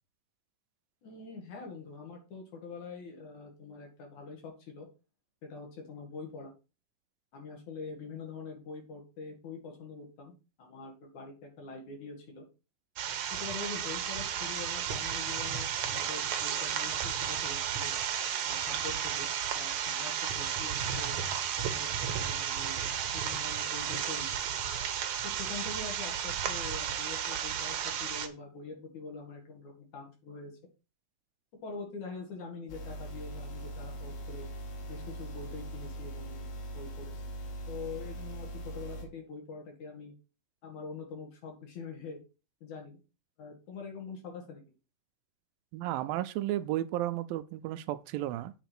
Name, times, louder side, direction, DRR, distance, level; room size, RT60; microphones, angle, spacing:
voice 1, 1.0-4.9 5.4-6.5 7.3-12.5 13.3-17.9 18.5-21.1 21.6-22.8 23.1-24.3 25.2-30.6 31.6-34.5 34.9-37.1 37.7-40.1 40.6-42.2 42.6-43.0 43.4-44.8, left 4 dB, 55° left, 3.4 m, -44 dB
sound 1, 13.0-28.3, right 8 dB, 65° right, 1.9 m, -33 dB
sound 2, 32.7-39.1, right 1 dB, 75° left, 3.7 m, -41 dB
voice 2, 45.7-48.5, right 14 dB, 80° right, 2.3 m, -33 dB
8.0 x 5.0 x 6.0 m
omnidirectional pair, 4.2 m